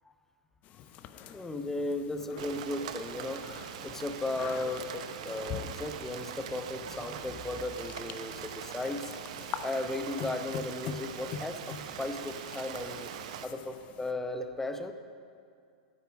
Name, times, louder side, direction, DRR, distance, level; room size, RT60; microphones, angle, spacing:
sound 1, 0.6-14.1, left 8 dB, 40° left, 0.6 m, -45 dB
voice 1, 1.3-3.5 3.8-9.1 9.6-13.1 13.4-14.9, left 2 dB, 10° left, 7 dB, 0.8 m, -36 dB
Rain, 2.4-13.5, right 9 dB, 65° right, 0.7 m, -42 dB
9.1 x 8.6 x 5.9 m, 2.3 s
hypercardioid pair, 100°, 4 cm